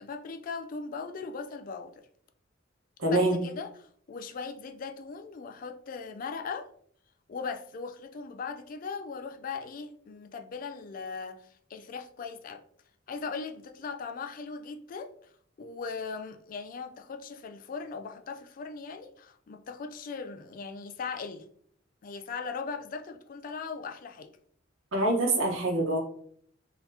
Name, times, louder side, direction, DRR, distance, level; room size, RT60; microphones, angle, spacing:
voice 1, 0.0-1.9 3.1-3.7 4.1-6.7 7.3-12.6 13.1-15.1 15.6-21.4 22.0-24.3, left 5 dB, 45° left, 0.3 m, -39 dB
voice 2, 3.0-3.4 24.9-26.0, right 2 dB, 80° right, 1.0 m, -25 dB
3.9 x 2.9 x 2.6 m
head